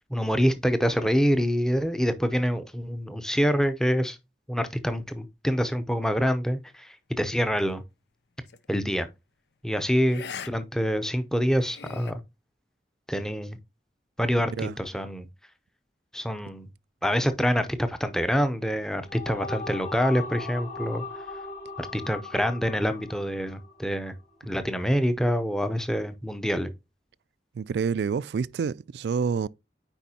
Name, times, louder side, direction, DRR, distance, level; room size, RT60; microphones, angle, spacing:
voice 1, 0.1-4.2 4.5-7.8 8.7-9.1 9.6-12.2 13.1-13.6 14.2-15.3 16.1-16.7 17.0-21.0 21.8-24.1 24.4-26.7, equal, 5° left, 0.6 m, -26 dB
sound 1, 8.5-8.7 10.0-10.5 10.8-10.9 11.4-12.1, left 7 dB, 75° left, 0.6 m, -40 dB
sound 2, 18.9-24.2, left 3 dB, 55° left, 2.5 m, -39 dB
voice 2, 27.6-29.5, right 6 dB, 75° right, 0.3 m, -28 dB
9.0 x 4.6 x 2.8 m
head